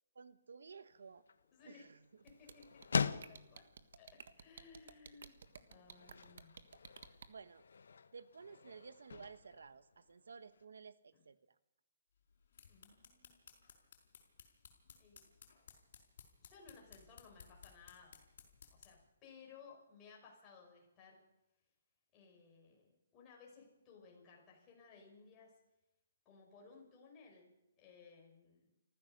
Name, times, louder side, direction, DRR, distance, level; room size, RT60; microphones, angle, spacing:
voice 1, 0.1-1.2 1.6-2.0 7.3-7.6 8.1-11.5, right 5 dB, 85° right, 13 dB, 1.1 m, -54 dB
sound 1, 0.9-10.6, left 5 dB, 80° left, 0.9 m, -44 dB
voice 2, 1.5-1.8 2.2-2.6 3.3-3.7 4.0-6.5 7.0-7.2 11.1-11.2 12.7-13.6 15.0-15.3 16.4-18.3 18.7-21.2 22.1-25.5 26.3-28.6, left 5 dB, 20° left, -1 dB, 5.5 m, -60 dB
sound 2, 2.3-7.3, right 6 dB, 65° right, 1.5 m, -54 dB
sound 3, 12.3-19.1, left 6 dB, 55° left, 5.1 m, -60 dB
27.0 x 15.0 x 6.6 m, 0.96 s
hypercardioid pair, 170°, 0 cm